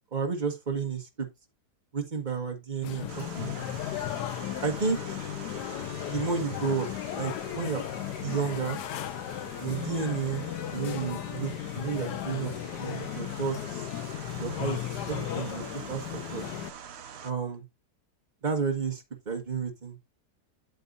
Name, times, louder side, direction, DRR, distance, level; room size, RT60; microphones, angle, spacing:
voice 1, 0.1-1.3 1.9-3.7 4.6-5.1 6.1-6.9 7.1-7.8 8.2-8.8 9.6-12.5 12.8-13.9 14.4-14.8 15.1-16.5 17.2-17.6 18.4-20.0, right 5 dB, 30° right, 1.6 m, -32 dB
sound 1, 2.8-16.7, left 12 dB, 80° left, 1.2 m, -35 dB
sound 2, 3.1-17.3, right 7 dB, 50° right, 0.9 m, -45 dB
8.1 x 8.0 x 2.5 m
omnidirectional pair, 1.7 m